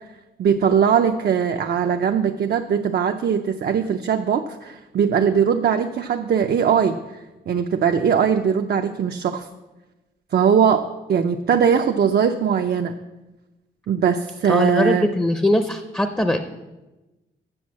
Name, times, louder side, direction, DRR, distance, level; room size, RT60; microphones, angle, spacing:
voice 1, 0.4-7.2 7.5-9.5 10.3-12.9 13.9-15.1, right 7 dB, 60° right, 5 dB, 0.5 m, -20 dB
voice 2, 14.5-16.4, left 1 dB, 10° left, 7 dB, 0.6 m, -21 dB
7.8 x 6.4 x 7.3 m, 1.1 s
wide cardioid pair, 110°, 19 cm